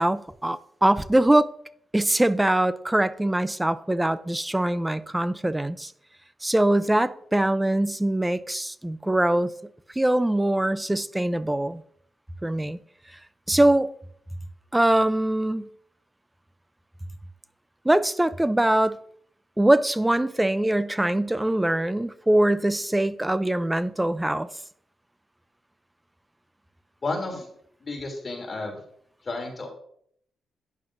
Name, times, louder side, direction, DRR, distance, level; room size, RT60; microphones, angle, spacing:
voice 1, 0.0-1.5 1.9-5.9 6.4-9.5 10.0-11.8 12.4-12.8 13.5-13.9 14.7-15.7 17.8-19.0 19.6-24.5, right 1 dB, 10° right, 0.5 m, -22 dB
voice 2, 27.0-27.5 27.8-28.8 29.2-29.7, left 2 dB, 35° left, 2.9 m, -31 dB
11.5 x 9.4 x 2.6 m
cardioid pair, 115°, 0 cm